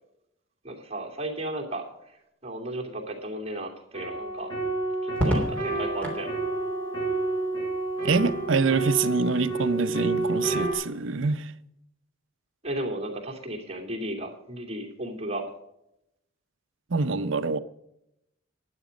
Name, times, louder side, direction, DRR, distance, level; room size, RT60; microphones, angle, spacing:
voice 1, 0.6-4.5 5.0-6.3 12.6-15.4, right 1 dB, 30° right, 2.5 m, -34 dB
sound 1, 3.9-10.7, right 2 dB, 25° left, 6.2 m, -29 dB
Crackle, 5.1-6.3 7.9-8.4, equal, 5° left, 3.2 m, -29 dB
voice 2, 8.0-11.5 16.9-17.6, right 4 dB, 70° right, 0.7 m, -25 dB
12.0 x 10.0 x 5.2 m
head